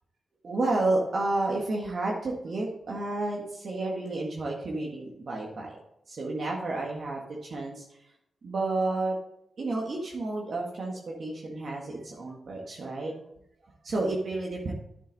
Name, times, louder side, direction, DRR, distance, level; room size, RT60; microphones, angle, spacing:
voice 1, 0.4-5.8 6.1-8.0 8.4-9.2 9.6-13.1 13.6-14.7, right 2 dB, 65° right, -2 dB, 1.7 m, -31 dB
10.0 x 7.3 x 4.1 m, 0.79 s
cardioid pair, 75°, 0 cm